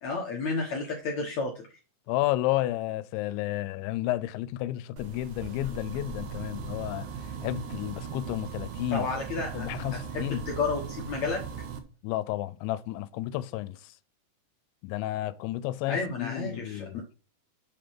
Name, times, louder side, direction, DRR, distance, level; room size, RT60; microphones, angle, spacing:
voice 1, 0.0-1.6 8.9-11.4 15.9-16.9, left 4 dB, 65° left, 1.7 m, -31 dB
voice 2, 2.1-7.1 7.4-9.1 9.5-10.4 12.0-13.8 14.8-17.0, left 15 dB, 85° left, 2.9 m, -31 dB
sound 1, 5.0-11.8, right 6 dB, 85° right, 1.7 m, -38 dB
8.1 x 5.2 x 5.8 m
omnidirectional pair, 5.2 m